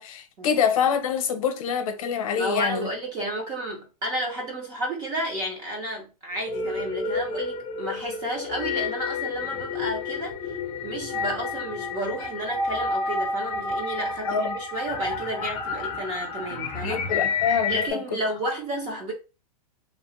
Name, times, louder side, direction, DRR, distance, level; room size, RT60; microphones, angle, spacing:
voice 1, 0.0-2.9 14.2-14.6 16.8-17.8, left 7 dB, 60° left, 0.7 m, -25 dB
voice 2, 2.4-10.6 10.8-17.0 17.7-19.1, right 1 dB, 20° right, 0.6 m, -31 dB
sound 1, 6.4-17.9, left 4 dB, 20° left, 0.6 m, -30 dB
2.9 x 2.1 x 2.9 m
hypercardioid pair, 160°, 20 cm